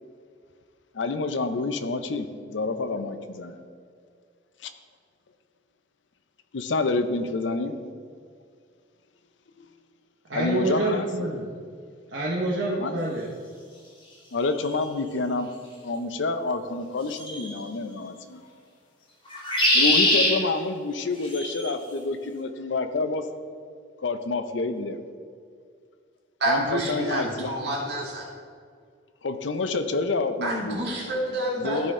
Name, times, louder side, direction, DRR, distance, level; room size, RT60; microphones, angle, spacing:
voice 1, 0.9-3.5 4.6-4.7 6.5-7.8 10.3-11.3 12.8-12.9 14.3-15.5 15.8-18.4 19.7-23.2 24.0-25.0 26.5-27.5 29.2-30.8 31.6-31.9, left 3 dB, 80° left, 9 dB, 0.6 m, -28 dB
voice 2, 10.3-11.5 12.1-13.3, right 2 dB, 80° right, -3 dB, 0.9 m, -27 dB
sound 1, 14.6-14.7 17.2-17.6 19.3-20.3 21.2-21.7, left 1 dB, 25° left, 1.4 m, -22 dB
voice 3, 26.4-28.3 30.4-31.9, right 1 dB, 60° right, -3 dB, 2.0 m, -28 dB
13.0 x 4.4 x 3.7 m, 2.1 s
head